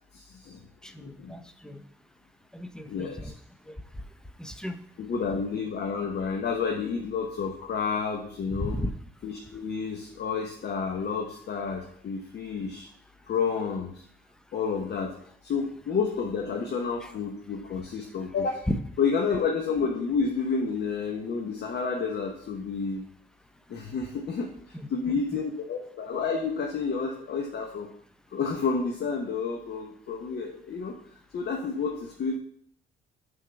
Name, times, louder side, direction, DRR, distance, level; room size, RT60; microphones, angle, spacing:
voice 1, 0.1-0.7 1.0-1.3 2.9-3.3 5.0-8.8 9.2-12.9 13.3-14.0 14.5-18.6 19.0-23.1 23.7-27.9 28.3-30.9 31.3-32.4, left 5 dB, 55° left, 1 dB, 1.0 m, -30 dB
voice 2, 0.8-1.8 2.5-3.3 3.7-3.8 4.4-4.8 8.5-8.9 17.0-17.1 18.7-18.8 24.7-24.9 25.3-25.4, left 1 dB, 5° left, 8 dB, 0.6 m, -34 dB
6.1 x 3.8 x 5.8 m, 0.64 s
cardioid pair, 90°, 20 cm